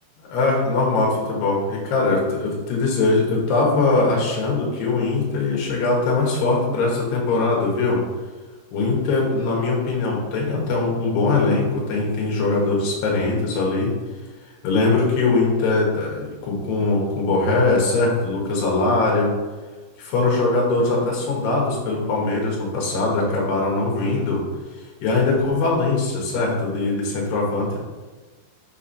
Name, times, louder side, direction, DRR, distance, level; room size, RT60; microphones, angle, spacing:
voice 1, 0.2-8.0 8.7-13.9 14.6-19.3 20.0-24.4 25.0-27.8, left 3 dB, 65° left, -3 dB, 3.4 m, -21 dB
8.0 x 3.6 x 5.7 m, 1.3 s
omnidirectional pair, 5.5 m